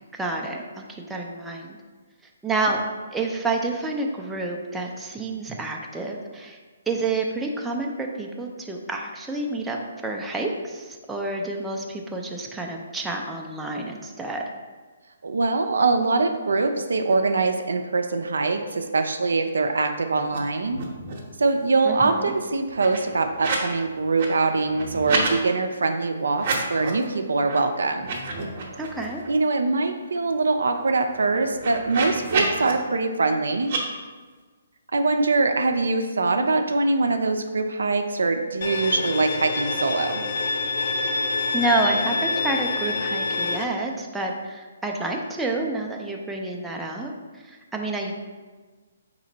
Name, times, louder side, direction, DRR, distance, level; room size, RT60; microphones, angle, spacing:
voice 1, 0.1-1.8 2.4-2.8 3.1-6.6 6.9-9.8 10.0-14.4 21.8-22.3 28.8-29.2 41.5-48.1, right 2 dB, 5° right, 0 dB, 0.4 m, -29 dB
voice 2, 15.2-20.8 21.4-28.1 29.3-33.7 34.9-40.2, right 3 dB, 80° right, 6 dB, 0.4 m, -23 dB
sound 1, 20.2-20.4 20.6-21.3 21.7-23.7 24.0-25.4 26.3-27.0 27.4-27.6 27.9-29.3 29.7-29.8 30.0-32.7 33.6-33.8, right 3 dB, 45° right, 0.8 m, -30 dB
Bowed string instrument, 38.6-43.6, left 3 dB, 55° left, 0.4 m, -26 dB
4.2 x 3.0 x 3.9 m, 1.4 s
hypercardioid pair, 145°, 0 cm